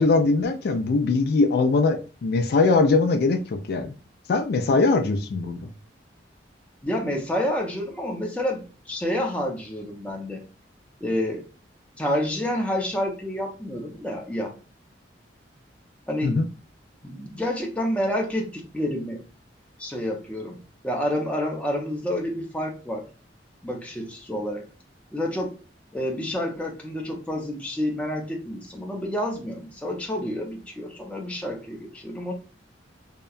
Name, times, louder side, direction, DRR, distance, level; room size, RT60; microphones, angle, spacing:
voice 1, 0.0-3.9 4.3-5.7 16.2-16.5, left 3 dB, 60° left, 7 dB, 0.4 m, -21 dB
voice 2, 6.8-10.4 11.0-11.4 12.0-14.5 16.1-16.4 17.0-19.2 19.8-20.6 20.8-23.0 23.6-24.7 25.1-25.5 25.9-32.3, left 1 dB, 5° left, 0 dB, 0.6 m, -29 dB
2.8 x 2.2 x 2.3 m, 0.35 s
head